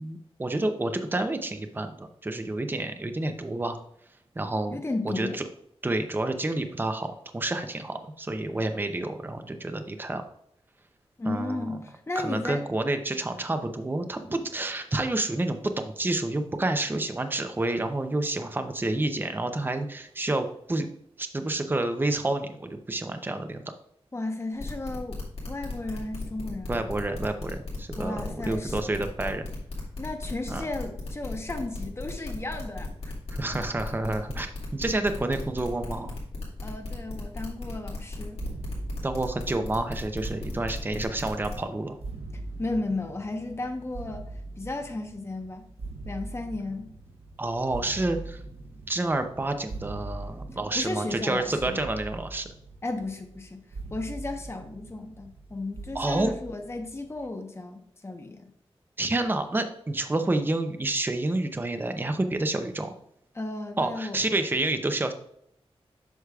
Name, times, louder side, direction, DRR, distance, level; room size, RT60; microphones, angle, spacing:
voice 1, 0.0-3.8 4.4-4.8 5.2-5.4 5.8-10.2 11.3-11.8 12.2-20.9 21.2-23.6 26.7-29.5 30.5-30.7 33.3-36.1 39.0-42.0 47.4-48.4 48.9-52.5 55.9-56.3 59.0-62.9 63.8-65.1, right 2 dB, 20° right, 7 dB, 0.6 m, -29 dB
voice 2, 4.7-5.4 11.2-12.6 24.1-25.2 25.5-26.9 27.9-28.8 30.0-33.1 36.6-38.4 42.6-44.3 44.6-45.7 46.0-46.9 50.7-51.8 52.8-53.6 53.9-58.5 63.3-64.2, left 2 dB, 25° left, 4 dB, 0.9 m, -34 dB
sound 1, 24.6-41.6, left 2 dB, 75° left, 2.3 m, -36 dB
sound 2, 38.4-57.3, right 2 dB, 75° right, 0.7 m, -42 dB
8.1 x 6.2 x 2.4 m, 0.72 s
wide cardioid pair, 95°, 11 cm